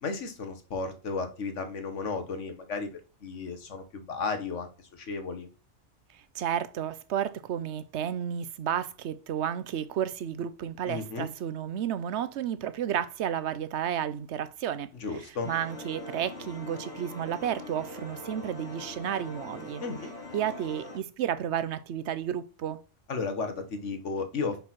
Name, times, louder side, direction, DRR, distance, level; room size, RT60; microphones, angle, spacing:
voice 1, 0.0-2.9 3.2-5.5 10.8-11.3 15.0-15.5 19.8-20.1 23.1-24.6, left 4 dB, 85° left, 1.6 m, -34 dB
voice 2, 6.3-14.9 15.5-19.8 20.3-22.8, right 9 dB, 75° right, 0.9 m, -32 dB
sound 1, 15.4-21.0, left 2 dB, 65° left, 2.2 m, -42 dB
5.3 x 4.4 x 5.9 m
omnidirectional pair, 1.2 m